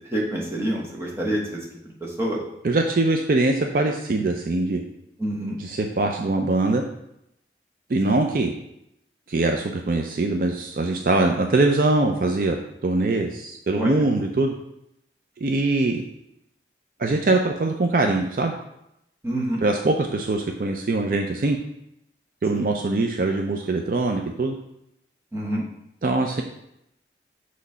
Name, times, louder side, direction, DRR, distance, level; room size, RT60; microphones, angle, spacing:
voice 1, 0.1-1.6 1.8-2.4 5.2-5.6 8.0-8.2 13.8-13.9 19.2-19.6 22.6-22.7 25.3-25.7, right 1 dB, 15° right, -3 dB, 1.2 m, -27 dB
voice 2, 2.6-4.8 5.6-6.8 7.9-8.5 9.3-14.5 15.4-16.0 17.0-18.5 19.6-21.6 22.4-24.6 26.0-26.4, right 2 dB, 50° right, 3 dB, 0.4 m, -22 dB
6.0 x 3.1 x 5.5 m, 0.80 s
head